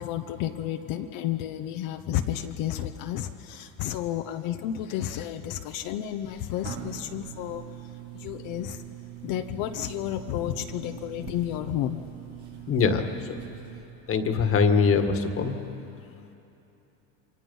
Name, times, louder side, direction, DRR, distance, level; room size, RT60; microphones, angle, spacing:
voice 1, 0.0-7.6 8.1-8.8 9.2-12.0, left 11 dB, 65° left, 7 dB, 1.0 m, -31 dB
sound 1, 5.8-13.8, right 10 dB, 80° right, 2.9 m, -43 dB
voice 2, 12.7-13.0 14.1-15.5, left 5 dB, 40° left, 7 dB, 1.8 m, -22 dB
28.5 x 24.5 x 5.5 m, 3.0 s
cardioid pair, 130°, 35 cm